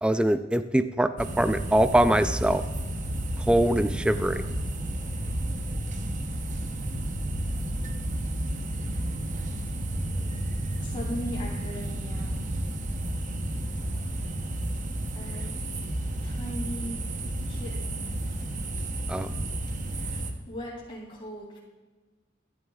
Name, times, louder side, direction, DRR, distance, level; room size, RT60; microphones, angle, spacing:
voice 1, 0.0-2.6 3.5-4.4 19.1-19.3, right 1 dB, 5° right, 11 dB, 0.3 m, -23 dB
sound 1, 1.2-20.3, right 1 dB, 45° right, 0.8 m, -32 dB
voice 2, 10.8-12.5 15.1-15.5 16.2-17.0 17.5-18.1 19.9-21.6, equal, 30° left, -4 dB, 3.1 m, -39 dB
12.5 x 11.0 x 2.4 m, 1.3 s
head